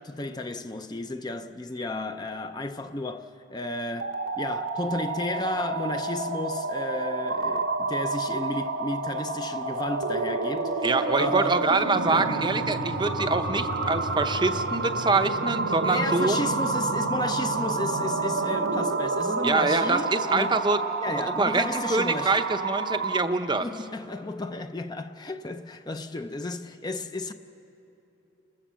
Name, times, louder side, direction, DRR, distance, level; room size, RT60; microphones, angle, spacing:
voice 1, 0.0-11.6 12.1-12.3 15.8-20.6 21.0-22.5 23.6-27.3, left 2 dB, 20° left, 0.5 m, -33 dB
sound 1, 3.9-23.3, right 3 dB, 90° right, 1.3 m, -29 dB
voice 2, 10.8-16.4 19.4-20.8 21.1-23.7, right 3 dB, 20° right, 0.6 m, -25 dB
29.5 x 14.0 x 7.4 m
head